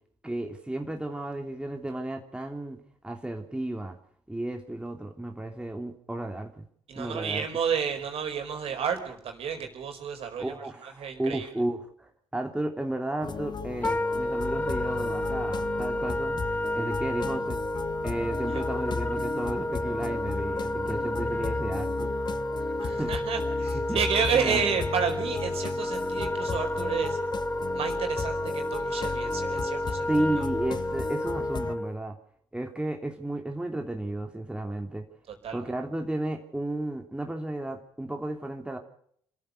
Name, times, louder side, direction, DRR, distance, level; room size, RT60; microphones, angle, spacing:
voice 1, 0.2-4.0 4.3-6.7 7.0-7.4 10.4-17.6 18.0-22.2 22.8-23.1 23.7-24.0 24.3-24.6 30.1-32.1 32.5-35.0 35.5-38.8, right 1 dB, 10° right, 4 dB, 3.0 m, -33 dB
voice 2, 6.9-10.5 10.8-11.5 18.5-18.6 22.8-27.2 27.7-30.1 30.4-30.5 35.4-35.6, right 7 dB, 50° right, 4 dB, 4.8 m, -31 dB
sound 1, 13.2-31.8, left 5 dB, 35° left, 1.1 m, -35 dB
Wind instrument woodwind instrument, 13.8-31.9, left 1 dB, 15° left, 1.2 m, -31 dB
27.5 x 14.5 x 6.7 m, 0.65 s
figure-of-eight pair, 45°, 12 cm